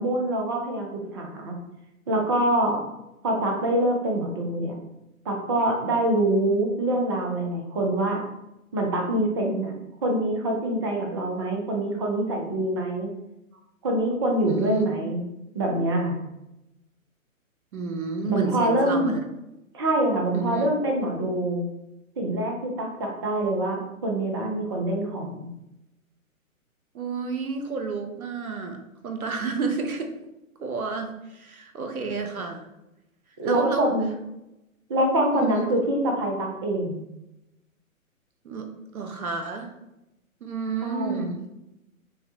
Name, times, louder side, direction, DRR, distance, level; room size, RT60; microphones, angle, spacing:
voice 1, 0.0-1.5 2.1-2.8 3.2-4.7 5.2-8.2 8.7-9.7 10.0-13.1 13.8-15.2 15.5-16.2 18.3-19.1 19.7-21.7 22.2-25.5 33.4-34.1 34.9-37.0 40.8-41.3, right 1 dB, 20° right, 1 dB, 0.4 m, -25 dB
voice 2, 14.5-14.9 17.7-19.2 20.3-20.7 26.9-28.8 29.0-30.1 30.6-32.7 33.4-33.9 35.3-35.7 38.4-39.7 40.4-41.4, right 5 dB, 80° right, 5 dB, 0.9 m, -30 dB
5.6 x 2.1 x 2.7 m, 0.92 s
figure-of-eight pair, 125°, 42 cm